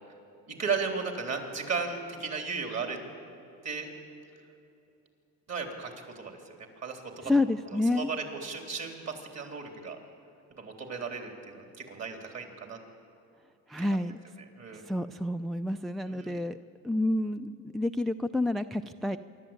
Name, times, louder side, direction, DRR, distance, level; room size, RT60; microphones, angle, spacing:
voice 1, 0.5-3.0 3.6-3.9 5.5-7.3 7.7-10.0 10.6-12.8 13.8-13.9 14.6-14.8 16.1-16.4, right 5 dB, 45° right, 4 dB, 3.7 m, -35 dB
voice 2, 7.2-8.1 13.7-14.2 14.7-16.6 16.8-19.2, left 2 dB, ahead, 10 dB, 0.4 m, -29 dB
25.5 x 12.0 x 9.0 m, 2.7 s
supercardioid pair, 90°, 37 cm